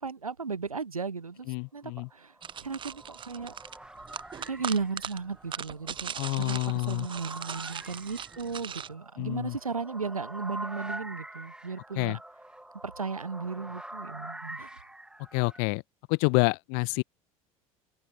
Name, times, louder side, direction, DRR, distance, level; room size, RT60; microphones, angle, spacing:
voice 1, 0.0-1.5 1.7-2.3 2.6-3.5 4.4-12.2 12.8-14.8, right 5 dB, 90° right, 0.6 m, -35 dB
voice 2, 1.5-2.1 6.1-7.1 9.2-9.6 11.9-12.2 15.3-15.8 16.1-17.0, left 40 dB or more, 55° left, 1.0 m, -28 dB
sound 1, 2.2-15.6, right 1 dB, 5° right, 1.8 m, -45 dB
sound 2, 2.4-8.9, right 8 dB, 25° right, 0.9 m, -40 dB
open air
figure-of-eight pair, 70°, 18 cm